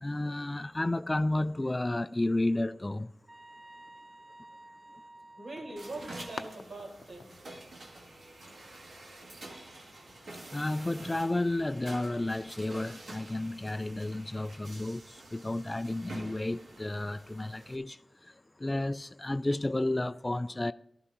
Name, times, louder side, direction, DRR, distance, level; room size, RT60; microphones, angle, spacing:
voice 1, 0.0-3.1 10.5-18.3 18.6-20.7, left 2 dB, 25° left, 0.3 m, -32 dB
sound 1, 3.3-6.5, right 2 dB, 35° right, 1.0 m, -52 dB
sound 2, 5.4-10.6, left 4 dB, 70° left, 0.6 m, -51 dB
voice 2, 5.4-7.4, right 2 dB, 70° right, 4.3 m, -42 dB
sound 3, 5.8-17.8, right 2 dB, 90° right, 2.2 m, -48 dB
15.0 x 12.0 x 2.9 m
wide cardioid pair, 85°, 0 cm